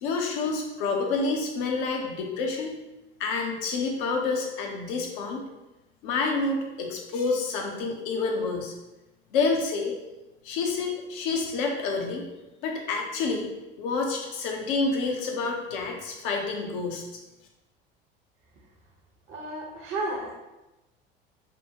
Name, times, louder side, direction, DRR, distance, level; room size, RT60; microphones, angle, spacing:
voice 1, 0.0-2.7 3.2-5.4 6.0-8.7 9.3-9.9 10.4-12.2 12.6-13.5 13.8-17.0, left 4 dB, 60° left, 1 dB, 0.8 m, -28 dB
voice 2, 19.3-20.3, right 2 dB, 40° right, -2 dB, 0.8 m, -32 dB
5.3 x 2.2 x 2.8 m, 1.0 s
figure-of-eight pair, 65°, 31 cm